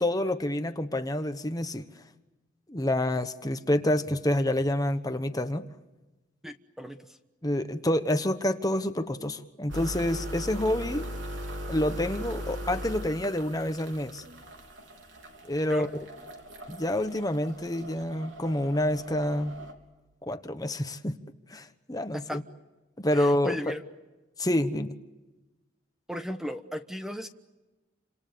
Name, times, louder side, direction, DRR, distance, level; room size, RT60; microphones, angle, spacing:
voice 1, 0.0-1.8 2.7-5.6 7.4-11.1 11.7-14.2 15.4-15.9 16.7-19.5 20.2-21.2 21.5-22.4 23.0-23.7 24.4-24.9, left 1 dB, 20° left, 8 dB, 1.2 m, -28 dB
voice 2, 6.4-7.2 15.7-15.9 22.1-22.4 23.1-23.8 26.1-27.3, equal, ahead, 7 dB, 1.1 m, -36 dB
sound 1, 9.7-19.7, equal, 80° right, 3.9 m, -39 dB
30.0 x 26.5 x 7.0 m, 1.1 s
head